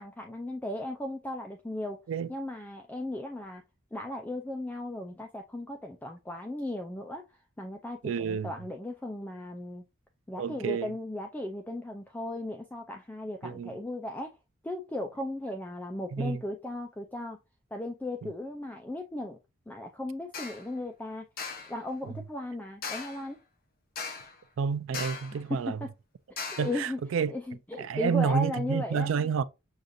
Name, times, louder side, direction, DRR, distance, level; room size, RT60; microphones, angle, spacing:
voice 1, 0.0-2.0 2.3-3.6 3.9-9.8 10.3-14.3 14.6-17.4 17.7-19.4 19.7-21.3 21.7-23.4 25.3-25.9 26.3-27.0 27.3-29.3, left 1 dB, 10° left, 0.3 m, -36 dB
voice 2, 8.0-8.5 10.4-10.9 13.4-13.7 16.1-16.4 18.2-18.3 22.1-22.2 24.6-25.8 26.6-27.3 27.8-29.4, right 6 dB, 70° right, 0.3 m, -29 dB
sound 1, 20.3-20.7 21.4-21.8 22.8-23.3 24.0-24.4 24.9-25.4 26.4-26.8, left 5 dB, 45° left, 0.8 m, -38 dB
6.3 x 2.4 x 2.6 m
head